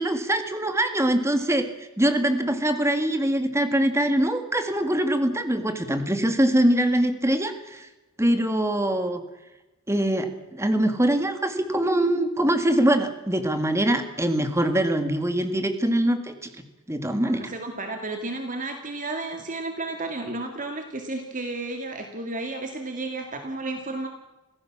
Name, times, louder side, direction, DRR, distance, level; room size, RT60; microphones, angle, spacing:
voice 1, 0.0-1.7 2.0-7.9 8.2-9.2 9.9-16.5 16.9-17.5, right 1 dB, 10° right, 8 dB, 2.0 m, -23 dB
voice 2, 17.2-24.1, right 2 dB, 35° right, 5 dB, 2.1 m, -32 dB
25.5 x 17.0 x 7.3 m, 1.0 s
head